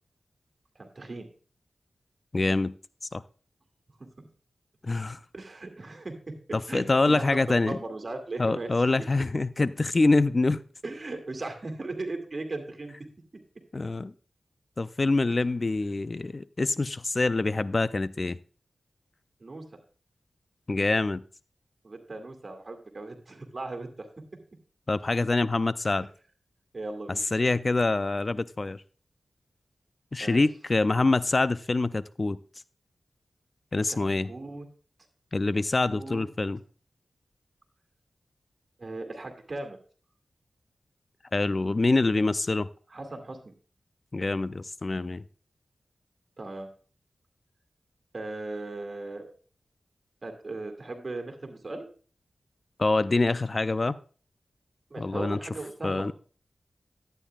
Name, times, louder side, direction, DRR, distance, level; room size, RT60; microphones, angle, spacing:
voice 1, 0.8-1.3 5.3-6.3 6.7-8.7 10.8-13.0 19.4-19.6 21.8-24.1 26.7-27.2 30.2-30.4 33.9-34.0 34.3-34.7 35.9-36.3 38.8-39.8 42.9-43.5 46.4-46.7 48.1-49.3 50.2-51.9 54.9-56.1, right 2 dB, 50° right, 4 dB, 2.2 m, -37 dB
voice 2, 2.3-2.7 3.1-3.2 4.8-5.2 6.5-7.8 8.4-10.6 13.7-14.1 14.8-18.4 20.7-21.2 24.9-26.1 27.3-28.8 30.1-32.4 33.7-34.3 35.3-36.6 41.3-42.7 44.1-45.2 52.8-54.0 55.0-55.4 55.8-56.1, left 3 dB, 45° left, 15 dB, 0.4 m, -25 dB
11.5 x 9.2 x 2.3 m, 0.40 s
cardioid pair, 40°, 0 cm